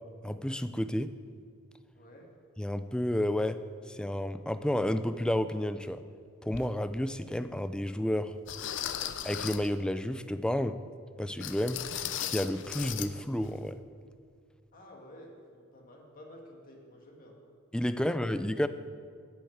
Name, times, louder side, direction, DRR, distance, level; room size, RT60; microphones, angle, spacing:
voice 1, 0.2-1.1 2.6-3.6 3.9-6.0 6.4-8.4 9.2-10.8 11.2-11.8 12.2-13.8 17.7-18.7, left 1 dB, 5° left, 11 dB, 0.3 m, -31 dB
voice 2, 1.9-2.3 14.7-17.4, left 1 dB, 45° left, 0 dB, 1.8 m, -51 dB
sound 1, 6.5-6.7 7.3-7.4 8.5-9.7 11.4-13.1 13.4-13.6 14.0-14.1, left 10 dB, 60° left, 0.5 m, -37 dB
10.5 x 6.4 x 8.6 m, 2.1 s
head